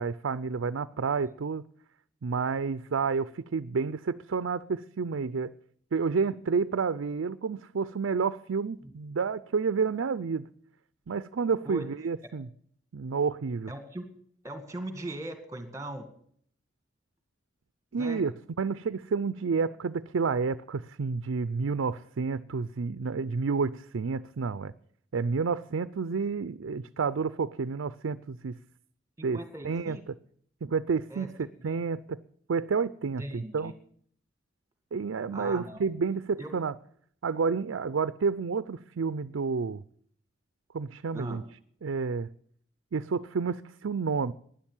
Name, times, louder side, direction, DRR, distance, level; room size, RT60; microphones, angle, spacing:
voice 1, 0.0-1.6 2.2-5.5 5.9-10.5 11.1-12.5 12.9-13.7 17.9-18.3 18.6-24.7 25.1-28.5 29.2-29.4 29.6-30.0 30.6-31.3 31.6-32.2 32.5-33.7 34.9-36.7 37.2-39.8 40.7-41.4 41.8-42.3 42.9-44.3, right 5 dB, 90° right, 0.5 m, -30 dB
voice 2, 13.7-14.1 14.4-16.1 17.9-18.2 29.2-30.0 31.1-31.3 31.6-31.7 33.2-33.7 35.3-35.9 36.4-36.5 41.1-41.4, right 1 dB, 15° right, 2.0 m, -39 dB
12.0 x 10.5 x 8.9 m
head